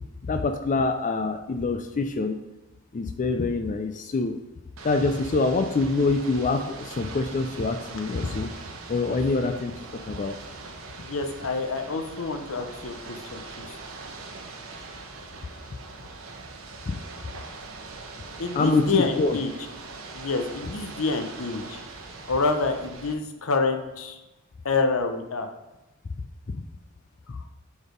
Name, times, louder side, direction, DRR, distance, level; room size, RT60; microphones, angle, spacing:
voice 1, 0.2-2.4 2.9-4.3 4.8-8.5 8.9-9.7 10.1-10.4 16.9-17.0 18.5-19.4, left 3 dB, 40° left, 6 dB, 0.4 m, -25 dB
Ocean / Boat Water vehicle, 4.8-23.1, right 3 dB, 90° right, 0.8 m, -42 dB
voice 2, 11.0-13.7 18.4-19.5 20.1-21.8 22.3-24.2 24.6-25.5, left 3 dB, 85° left, 6 dB, 0.8 m, -27 dB
5.0 x 4.2 x 5.0 m, 1.0 s
head